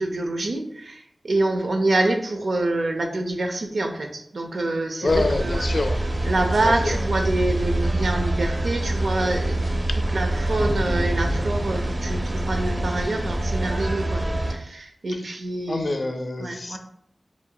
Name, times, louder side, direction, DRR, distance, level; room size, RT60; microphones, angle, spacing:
voice 1, 0.0-5.7 6.2-9.6 10.1-14.2 14.5-16.0 16.4-16.8, right 2 dB, 80° right, 4 dB, 0.6 m, -26 dB
voice 2, 5.0-6.0 6.6-7.1 15.7-16.8, left 2 dB, 65° left, 6 dB, 0.5 m, -26 dB
sound 1, 5.1-14.5, right 1 dB, 50° right, 0.8 m, -25 dB
7.0 x 2.8 x 2.2 m, 0.74 s
wide cardioid pair, 60°, 0 cm